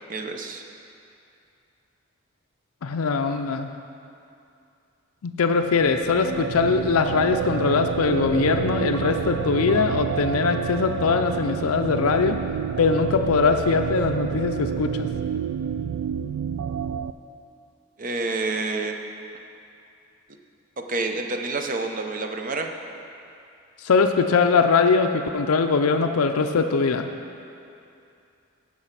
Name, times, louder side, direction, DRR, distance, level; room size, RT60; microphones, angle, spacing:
voice 1, 0.1-0.6 8.2-8.3 18.0-18.9 20.9-22.7, right 3 dB, 40° right, 4 dB, 0.7 m, -28 dB
voice 2, 2.8-3.7 5.2-12.4 12.8-15.1 23.8-27.1, left 4 dB, 80° left, 6 dB, 0.5 m, -21 dB
sound 1, 5.5-17.1, right 8 dB, 70° right, 0.3 m, -29 dB
14.5 x 4.9 x 5.8 m, 2.6 s
head